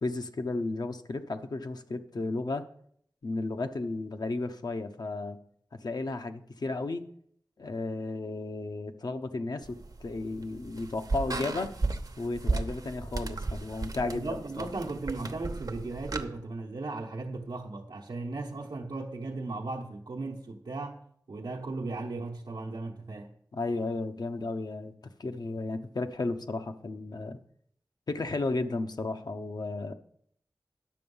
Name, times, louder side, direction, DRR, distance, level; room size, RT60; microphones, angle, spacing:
voice 1, 0.0-2.7 3.2-5.4 5.7-7.0 7.6-11.7 12.2-14.3 14.6-14.7 23.5-24.9 25.2-27.4 28.1-29.9, left 2 dB, 70° left, 0.8 m, -33 dB
sound 1, 9.6-16.3, right 3 dB, 60° right, 0.9 m, -35 dB
voice 2, 14.0-21.0 21.3-23.3, right 3 dB, 85° right, 1.0 m, -36 dB
10.5 x 6.9 x 5.5 m
cardioid pair, 45°, 7 cm